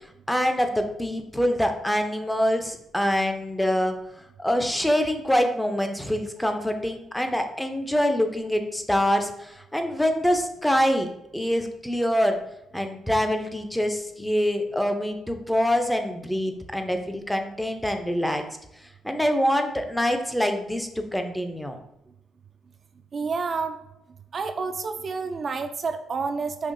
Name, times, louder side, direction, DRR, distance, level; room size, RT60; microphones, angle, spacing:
voice 1, 0.3-11.1 11.3-12.4 12.7-18.4 19.0-21.8, equal, 5° left, 6 dB, 0.5 m, -25 dB
voice 2, 23.1-23.8 24.3-26.7, right 4 dB, 45° right, 7 dB, 0.3 m, -29 dB
5.5 x 2.9 x 2.6 m, 0.85 s
cardioid pair, 90°, 0 cm